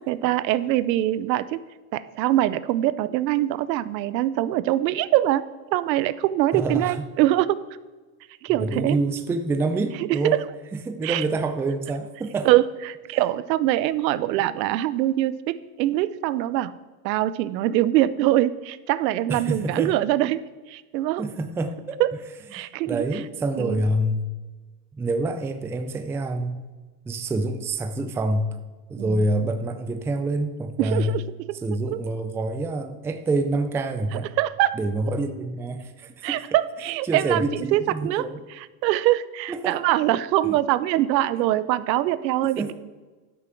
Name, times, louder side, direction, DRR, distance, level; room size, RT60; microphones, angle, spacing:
voice 1, 0.1-1.6 1.9-5.4 5.7-7.6 8.4-9.0 10.2-10.4 11.0-11.2 12.4-16.7 17.0-21.3 22.0-22.1 22.5-23.2 23.6-23.8 29.0-29.2 30.8-31.2 31.5-31.6 31.9-32.0 34.4-34.8 36.2-42.7, right 14 dB, 85° right, 16 dB, 0.7 m, -23 dB
voice 2, 6.5-7.1 8.5-10.4 10.7-12.5 19.3-19.9 21.2-22.0 22.5-24.3 25.0-26.7 27.1-28.6 28.9-31.2 31.6-34.3 34.7-36.4 37.0-38.4 39.5-39.8 40.4-40.6 42.1-42.7, right 2 dB, 5° right, 7 dB, 0.3 m, -27 dB
11.0 x 6.3 x 5.9 m, 1.3 s
supercardioid pair, 120°, 50 cm